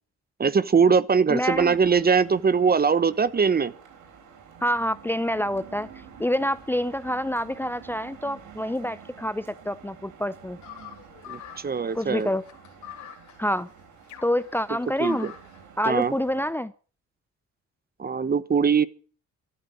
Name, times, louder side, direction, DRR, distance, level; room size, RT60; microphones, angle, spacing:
voice 1, 0.4-3.7 11.3-12.3 15.0-15.3 15.9-16.1 18.0-18.9, right 6 dB, 30° right, 1.0 m, -21 dB
voice 2, 1.3-1.8 4.6-10.6 11.9-12.4 13.4-13.7 14.2-15.3 15.8-16.7, equal, 5° left, 0.7 m, -27 dB
sound 1, 1.4-16.5, right 7 dB, 85° right, 4.3 m, -49 dB
sound 2, 10.6-15.6, left 10 dB, 75° left, 3.5 m, -45 dB
13.5 x 12.0 x 8.5 m
cardioid pair, 90°, 30 cm